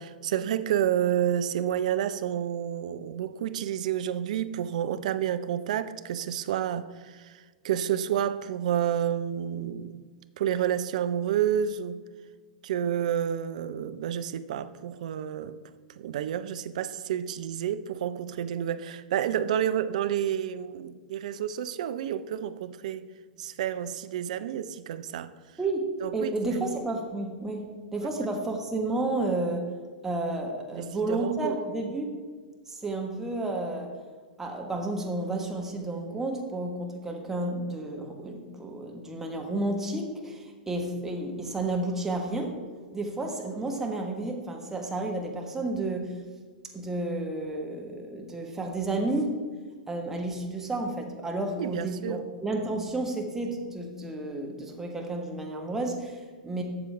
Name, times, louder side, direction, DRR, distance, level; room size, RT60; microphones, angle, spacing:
voice 1, 0.0-10.0 10.4-12.0 12.6-15.6 16.0-23.1 23.4-25.3 26.0-26.6 30.7-31.6 51.6-52.2, right 10 dB, 55° right, 0.5 m, -30 dB
voice 2, 25.6-27.6 27.9-29.7 30.0-32.1 32.7-33.9 34.4-42.5 42.9-46.2 46.7-49.3 49.9-56.6, right 2 dB, 10° right, 1.4 m, -31 dB
12.0 x 6.8 x 3.5 m
figure-of-eight pair, 100°, 5 cm